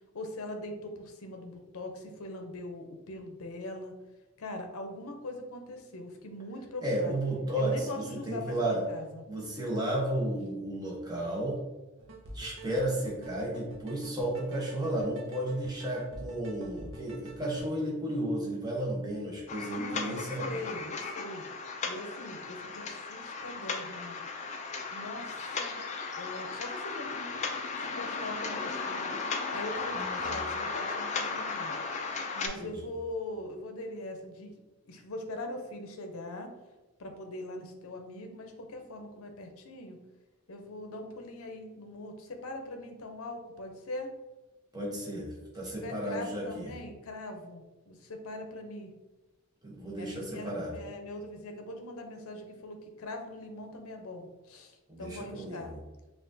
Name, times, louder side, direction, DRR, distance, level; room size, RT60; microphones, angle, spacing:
voice 1, 0.1-3.9 4.4-7.2 7.6-9.2 19.7-21.4 21.8-24.2 24.9-25.7 26.2-27.5 27.8-29.1 29.5-31.7 32.3-34.5 34.9-36.5 37.0-40.0 40.5-44.1 45.6-48.9 50.0-55.7, left 1 dB, 70° left, 4 dB, 0.6 m, -41 dB
voice 2, 6.8-8.8 9.3-11.6 12.3-20.6 29.9-30.4 32.6-32.7 44.7-46.7 49.6-50.7 54.9-55.8, right 1 dB, 15° right, -4 dB, 0.9 m, -33 dB
sound 1, 12.0-17.7, right 2 dB, 60° right, 0.7 m, -48 dB
sound 2, 19.5-32.5, left 4 dB, 30° left, 0.3 m, -36 dB
5.6 x 2.4 x 2.6 m, 1.1 s
head